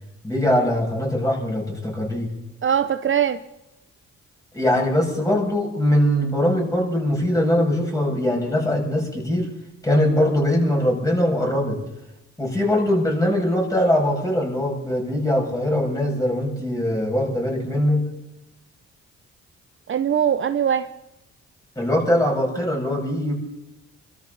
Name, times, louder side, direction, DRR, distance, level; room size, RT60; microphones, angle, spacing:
voice 1, 0.2-2.3 4.5-9.5 9.8-11.8 12.4-18.0 21.7-23.3, left 1 dB, 10° left, -1 dB, 6.5 m, -21 dB
voice 2, 2.6-3.4 19.9-20.9, right 8 dB, 40° right, 11 dB, 0.8 m, -21 dB
26.5 x 13.5 x 4.0 m, 0.93 s
cardioid pair, 90°, 30 cm